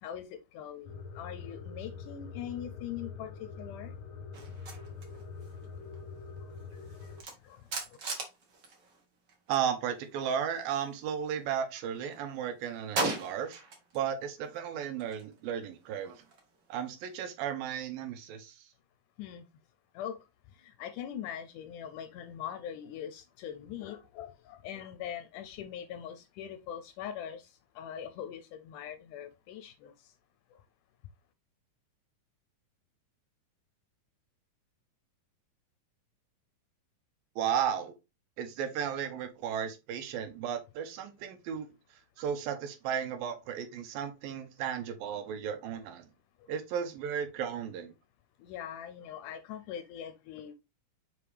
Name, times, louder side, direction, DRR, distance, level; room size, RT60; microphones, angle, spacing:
voice 1, 0.0-3.9 6.4-8.0 19.2-19.5 19.9-30.2 30.5-30.6 46.4-46.5 48.4-50.6, left 9 dB, 80° left, 1.9 m, -42 dB
sound 1, 0.9-7.2, left 5 dB, 60° left, 1.7 m, -44 dB
sound 2, 4.3-9.7 9.9-11.6 11.9-14.1 14.4-17.1, right 3 dB, 45° right, 1.5 m, -41 dB
voice 2, 9.5-13.6 13.9-16.2 16.7-18.7 37.4-37.9 38.4-41.7 42.2-46.1 46.5-47.9, right 8 dB, 85° right, 2.8 m, -34 dB
5.9 x 5.2 x 3.3 m
omnidirectional pair, 4.1 m